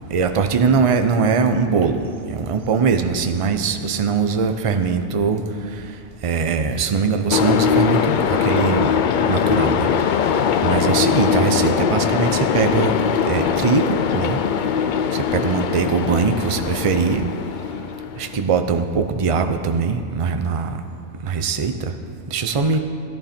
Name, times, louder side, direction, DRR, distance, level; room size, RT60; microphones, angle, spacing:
voice 1, 0.1-2.0 2.3-5.4 6.2-8.1 8.4-8.9 9.3-9.9 10.6-13.0 13.3-14.4 15.1-17.3 18.2-20.7 21.2-21.9 22.3-22.8, right 5 dB, 45° right, 7 dB, 0.4 m, -21 dB
sound 1, 7.3-18.4, left 7 dB, 80° left, 0.4 m, -21 dB
14.0 x 11.5 x 4.4 m, 2.5 s
omnidirectional pair, 1.4 m